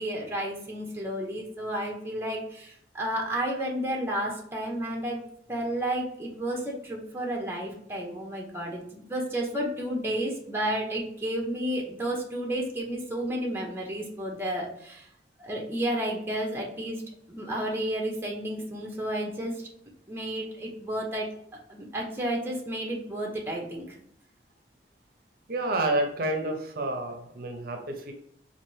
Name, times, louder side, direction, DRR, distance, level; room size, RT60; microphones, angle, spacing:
voice 1, 0.0-5.2 5.5-15.1 15.4-17.0 17.3-19.5 20.1-21.3 21.7-24.0, right 1 dB, 15° right, -1 dB, 0.7 m, -31 dB
voice 2, 25.5-28.1, right 2 dB, 55° right, 3 dB, 0.6 m, -29 dB
4.3 x 2.6 x 3.1 m, 0.72 s
head